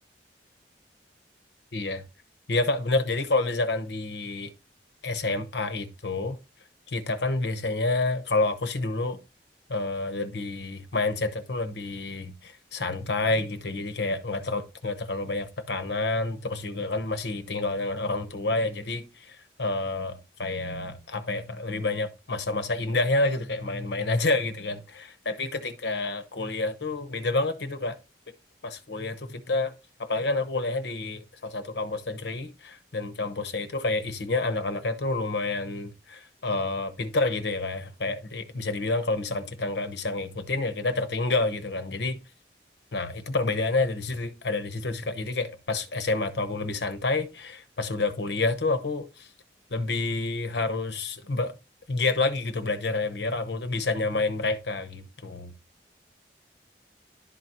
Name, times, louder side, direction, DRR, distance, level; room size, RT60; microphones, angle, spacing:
voice 1, 1.7-2.0 2.5-4.5 5.0-6.4 6.9-9.2 9.7-28.0 28.6-29.7 30.0-42.2 42.9-49.3 49.7-51.5 51.9-55.5, left 3 dB, 75° left, 0.9 m, -29 dB
11.5 x 4.0 x 2.9 m
head